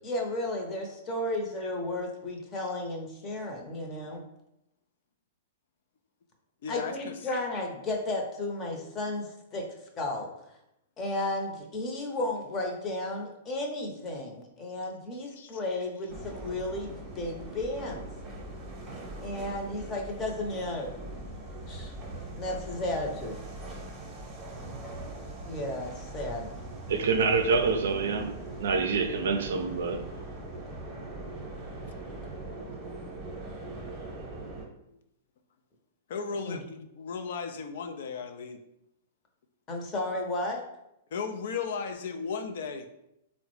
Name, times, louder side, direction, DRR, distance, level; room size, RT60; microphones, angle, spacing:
voice 1, 0.0-4.2 6.7-9.6 10.0-10.3 11.0-18.1 19.2-20.9 21.6-21.9 22.3-23.4 25.5-26.5 36.4-36.6 39.7-40.6, left 2 dB, 30° left, 0.7 m, -33 dB
voice 2, 6.6-7.1 15.4-15.6 19.1-19.2 34.5-34.7 36.1-38.6 41.1-42.9, left 5 dB, 65° left, 0.3 m, -36 dB
sound 1, 16.1-34.7, right 2 dB, 25° right, 0.8 m, -41 dB
voice 3, 26.9-28.3 28.6-30.0, right 4 dB, 70° right, 0.4 m, -26 dB
3.6 x 2.1 x 3.1 m
hypercardioid pair, 115°, 0 cm